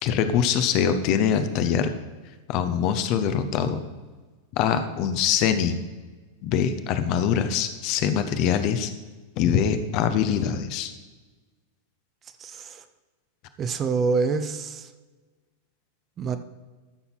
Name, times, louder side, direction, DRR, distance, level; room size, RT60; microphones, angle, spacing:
voice 1, 0.0-1.9 2.5-3.8 4.5-5.8 6.4-8.9 9.4-10.9, left 8 dB, 40° left, 9 dB, 0.8 m, -23 dB
voice 2, 12.4-12.8 13.6-14.9 16.2-16.4, right 4 dB, 25° right, 10 dB, 0.7 m, -26 dB
13.5 x 6.9 x 4.1 m, 1.3 s
figure-of-eight pair, 90°, 0 cm